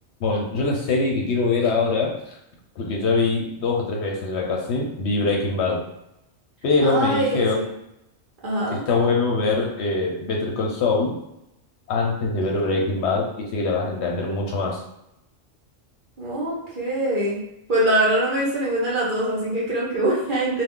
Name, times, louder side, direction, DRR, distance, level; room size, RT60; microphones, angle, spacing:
voice 1, 0.2-2.1 2.8-5.8 6.6-7.6 8.7-11.1 11.9-14.8, left 3 dB, 65° left, -1 dB, 0.8 m, -23 dB
voice 2, 6.8-7.7 8.4-8.8 16.2-17.4 17.7-20.6, right 1 dB, 45° right, -6 dB, 0.9 m, -23 dB
2.3 x 2.3 x 3.6 m, 0.84 s
omnidirectional pair, 1.3 m